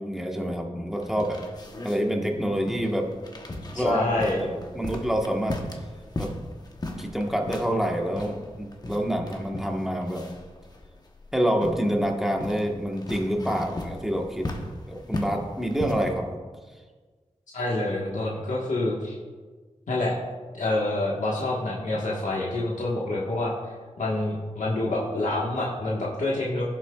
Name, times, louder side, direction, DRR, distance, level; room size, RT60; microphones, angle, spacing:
voice 1, 0.0-1.4 1.8-3.1 3.7-5.6 6.2-6.3 7.0-10.2 11.3-14.5 14.9-16.4, equal, 5° right, 1 dB, 1.3 m, -27 dB
sound 1, 1.0-16.2, left 1 dB, 30° left, 1.0 m, -38 dB
voice 2, 3.7-4.4 17.5-19.2 19.9-20.2 20.5-23.5 24.0-26.6, left 2 dB, 75° left, -5 dB, 1.4 m, -27 dB
16.0 x 7.5 x 2.4 m, 1.4 s
wide cardioid pair, 110°, 13 cm